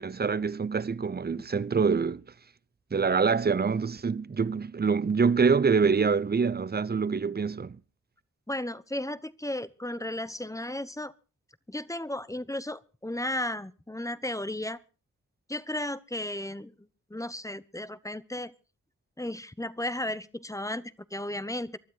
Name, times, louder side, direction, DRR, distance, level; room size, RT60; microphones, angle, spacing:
voice 1, 0.0-2.2 2.9-7.8, right 5 dB, 30° right, 0.7 m, -25 dB
voice 2, 8.5-11.1 11.7-14.8 15.5-16.7 17.1-18.5 19.2-21.7, left 1 dB, 10° left, 1.0 m, -34 dB
23.5 x 12.0 x 4.0 m
cardioid pair, 55°, 30 cm